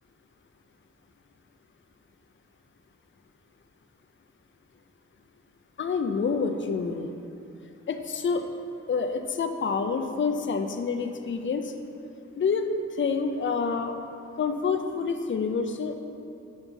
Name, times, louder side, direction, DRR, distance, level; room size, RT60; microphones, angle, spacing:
voice 1, 5.8-7.2 7.9-8.5 8.9-11.7 12.4-14.0 14.4-16.0, left 5 dB, 40° left, 7 dB, 0.4 m, -28 dB
5.4 x 4.4 x 5.4 m, 2.7 s
wide cardioid pair, 110°, 30 cm